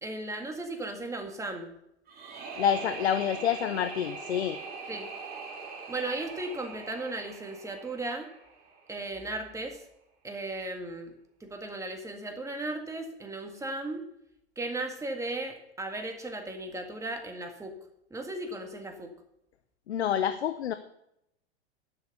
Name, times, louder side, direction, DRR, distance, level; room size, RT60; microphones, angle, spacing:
voice 1, 0.0-1.7 4.9-5.1 5.9-8.3 8.9-9.8 10.2-11.2 11.4-14.0 14.6-17.7 18.1-19.1, right 2 dB, 10° right, 4 dB, 1.9 m, -36 dB
sound 1, 2.1-9.0, right 4 dB, 25° right, 2.7 m, -42 dB
voice 2, 2.6-4.6 19.9-20.7, left 9 dB, 85° left, 11 dB, 0.8 m, -28 dB
11.5 x 6.4 x 6.9 m, 0.80 s
hypercardioid pair, 110°, 32 cm